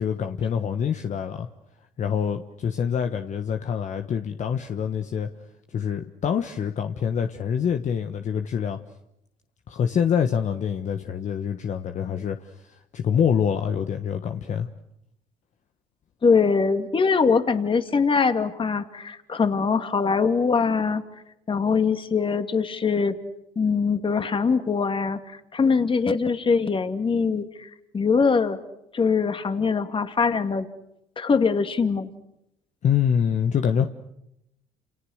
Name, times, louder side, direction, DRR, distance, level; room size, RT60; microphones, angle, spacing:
voice 1, 0.0-1.5 2.0-5.3 5.7-8.8 9.7-14.7 32.8-33.9, left 8 dB, 50° left, 1.5 m, -25 dB
voice 2, 16.2-21.0 21.5-23.2 23.6-28.6 28.9-30.7 31.2-32.1, left 5 dB, 30° left, 2.5 m, -22 dB
29.0 x 28.5 x 6.6 m
hypercardioid pair, 70°, 16 cm